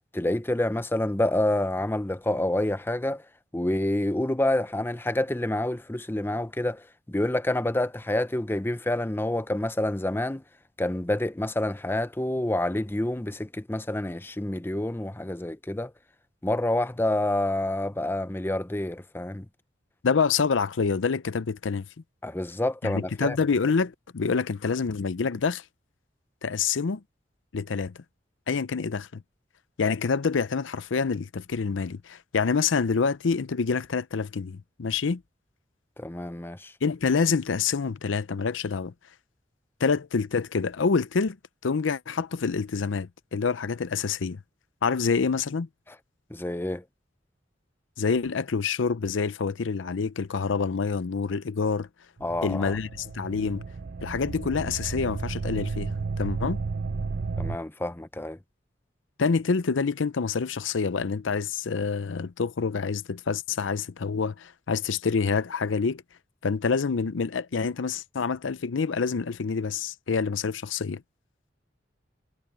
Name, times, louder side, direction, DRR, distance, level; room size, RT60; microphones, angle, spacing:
voice 1, 0.1-3.2 3.5-10.4 10.8-15.9 16.4-19.5 22.2-23.4 36.0-36.7 46.3-46.8 52.2-52.8 57.4-58.4, left 1 dB, 10° left, 0.7 m, -28 dB
voice 2, 20.0-21.9 22.8-25.6 26.4-27.0 27.5-27.9 28.5-29.2 29.8-35.2 36.8-38.9 39.8-41.4 41.6-44.4 44.8-45.7 48.0-51.9 52.4-53.6 54.0-56.6 59.2-66.0 66.4-71.0, left 5 dB, 85° left, 0.6 m, -27 dB
sound 1, 52.2-57.6, right 4 dB, 60° right, 0.6 m, -33 dB
head